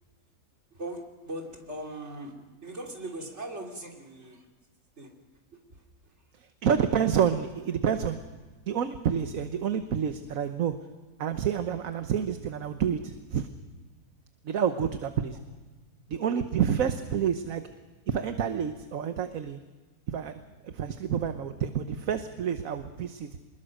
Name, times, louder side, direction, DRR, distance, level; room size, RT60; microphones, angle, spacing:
voice 1, 0.7-4.5 5.0-5.2 5.5-6.1, right 1 dB, 45° right, 1 dB, 3.5 m, -40 dB
voice 2, 6.4-8.2 8.7-10.8 11.2-13.5 14.4-15.4 16.1-17.6 18.1-19.6 20.1-20.3 20.6-23.3, right 8 dB, 65° right, 8 dB, 1.3 m, -28 dB
25.0 x 21.0 x 6.5 m, 1.3 s
omnidirectional pair, 1.6 m